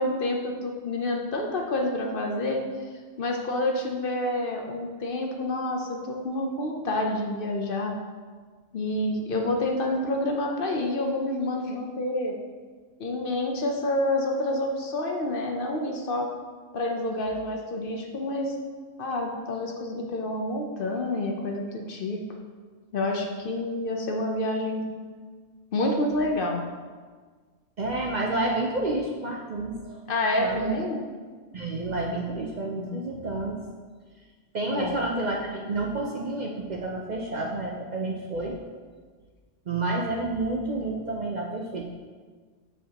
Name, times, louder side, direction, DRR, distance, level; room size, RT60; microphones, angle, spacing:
voice 1, 0.0-2.6 3.2-7.9 8.7-12.4 13.0-16.3 16.7-18.6 19.0-22.2 22.9-24.9 25.7-26.6 30.1-31.0 32.8-32.9 34.7-35.0, left 1 dB, 55° left, 2 dB, 0.7 m, -28 dB
voice 2, 27.8-30.0 30.4-30.8 31.5-33.6 34.5-38.6 39.7-41.8, right 2 dB, 60° right, -1 dB, 0.4 m, -29 dB
7.2 x 4.5 x 2.9 m, 1.5 s
omnidirectional pair, 1.3 m